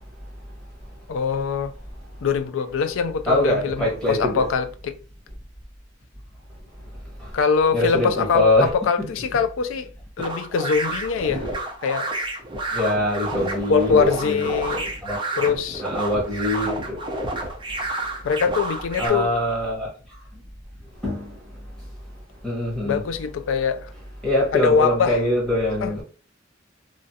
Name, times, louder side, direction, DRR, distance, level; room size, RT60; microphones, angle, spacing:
voice 1, 1.1-1.7 2.2-5.0 7.3-9.9 10.2-11.5 11.8-12.1 13.7-14.8 15.4-15.8 18.2-19.3 22.8-23.9 24.5-25.2 25.8-25.9, left 5 dB, 85° left, 0.4 m, -23 dB
voice 2, 3.3-4.5 6.8-7.4 7.7-8.7 9.0-9.1 12.7-15.2 15.8-17.8 18.0-18.1 19.0-20.4 20.9-23.0 24.2-26.0, left 1 dB, 5° left, 1.3 m, -24 dB
sound 1, 10.2-19.1, right 2 dB, 25° right, 0.6 m, -30 dB
3.1 x 2.3 x 2.7 m
head